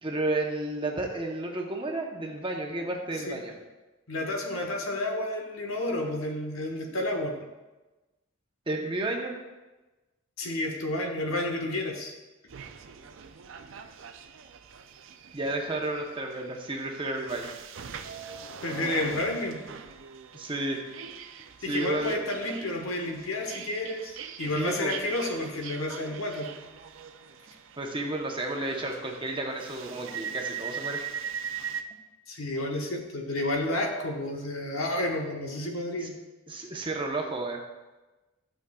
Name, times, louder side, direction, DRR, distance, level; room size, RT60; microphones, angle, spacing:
voice 1, 0.0-3.5 8.7-9.3 15.3-17.5 20.3-20.9 21.7-22.2 24.5-25.0 27.8-31.1 36.0-36.1 36.5-37.6, right 2 dB, 25° right, 1 dB, 0.9 m, -32 dB
voice 2, 4.1-7.3 10.4-12.1 18.6-19.6 21.6-26.5 32.3-36.1, left 1 dB, 80° left, 2 dB, 1.2 m, -31 dB
sound 1, 12.5-31.8, right 7 dB, 70° right, 0.5 m, -41 dB
11.5 x 6.4 x 2.3 m, 1.1 s
head